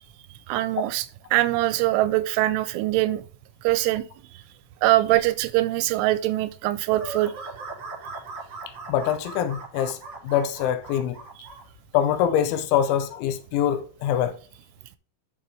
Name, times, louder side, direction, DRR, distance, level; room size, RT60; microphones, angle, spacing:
voice 1, 0.5-1.1 1.3-3.2 3.6-4.0 4.8-7.3 11.4-11.5, right 16 dB, 85° right, 3.0 m, -22 dB
sound 1, 6.9-11.6, right 3 dB, 45° right, 1.6 m, -39 dB
voice 2, 8.9-10.0 10.2-11.2 11.9-14.4, left 10 dB, 80° left, 3.1 m, -24 dB
11.5 x 5.0 x 3.3 m
omnidirectional pair, 5.6 m